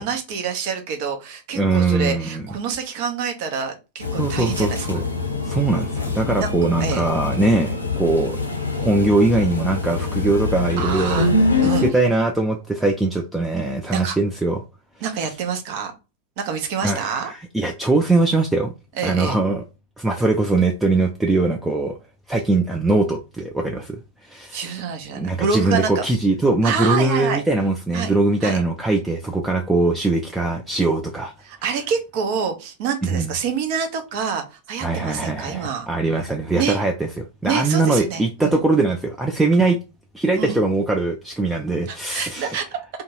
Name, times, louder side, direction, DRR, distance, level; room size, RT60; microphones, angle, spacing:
voice 1, 0.0-5.0 6.4-6.5 6.8-7.0 10.8-11.3 11.6-11.9 13.9-14.2 15.0-15.9 16.4-17.3 19.0-19.4 24.5-26.0 26.6-27.4 27.9-28.1 28.4-28.6 31.4-35.9 36.5-36.8 37.4-38.6 40.4-40.6 41.9-42.8, right 6 dB, 45° right, 0.7 m, -26 dB
voice 2, 1.5-2.4 4.2-5.0 5.4-8.4 8.8-11.3 11.6-14.6 16.8-18.7 19.0-19.6 20.0-22.0 22.3-24.8 25.2-31.3 33.0-33.3 34.8-37.1 37.4-39.8 40.1-42.6, right 2 dB, 5° right, 0.4 m, -21 dB
sound 1, 4.0-11.9, left 3 dB, 85° left, 0.6 m, -24 dB
2.7 x 2.3 x 2.8 m
figure-of-eight pair, 90°, 0 cm